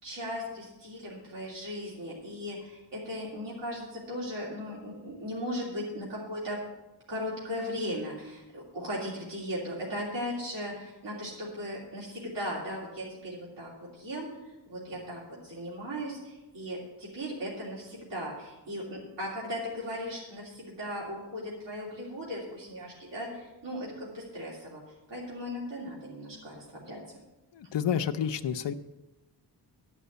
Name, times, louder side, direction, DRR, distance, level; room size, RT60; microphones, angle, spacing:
voice 1, 0.0-6.6 7.1-14.3 14.7-24.8 25.1-27.0, equal, 90° right, -6 dB, 3.1 m, -37 dB
voice 2, 27.5-28.7, left 8 dB, 90° left, 7 dB, 0.7 m, -29 dB
11.5 x 6.1 x 8.1 m, 1.0 s
wide cardioid pair, 170°, 41 cm